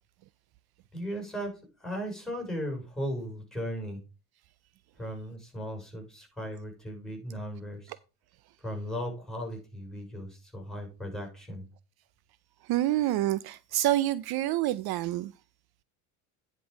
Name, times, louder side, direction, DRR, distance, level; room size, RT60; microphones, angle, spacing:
voice 1, 0.9-4.0 5.0-7.9 8.6-11.6, equal, ahead, 6.2 m, -37 dB
voice 2, 12.6-15.3, right 14 dB, 60° right, 0.5 m, -27 dB
10.0 x 5.4 x 5.0 m
cardioid pair, 105°, 43 cm